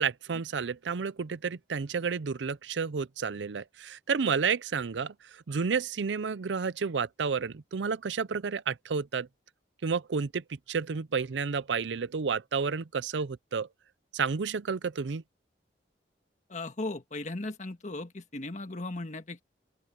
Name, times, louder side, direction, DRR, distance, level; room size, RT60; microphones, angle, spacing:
voice 1, 0.0-9.3 9.8-13.7 14.1-15.2, right 5 dB, 90° right, 0.6 m, -31 dB
voice 2, 16.5-19.4, left 2 dB, 45° left, 1.6 m, -37 dB
open air
head